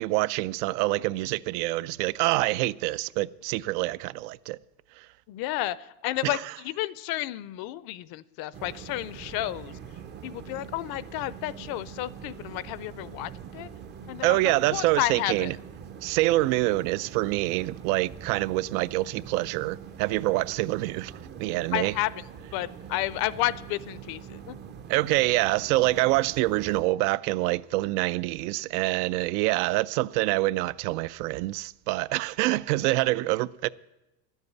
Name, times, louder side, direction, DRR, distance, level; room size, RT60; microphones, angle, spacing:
voice 1, 0.0-4.6 5.0-5.1 6.2-6.4 14.2-15.6 16.0-21.1 21.4-21.9 24.9-33.7, right 18 dB, 80° right, 0.5 m, -26 dB
voice 2, 5.3-9.8 10.2-13.7 14.1-14.4 14.7-15.5 21.7-22.1 22.5-24.6, left 16 dB, 55° left, 0.5 m, -31 dB
sound 1, 8.5-26.8, right 8 dB, 25° right, 0.4 m, -44 dB
11.0 x 8.2 x 9.5 m
cardioid pair, 150°, 45 cm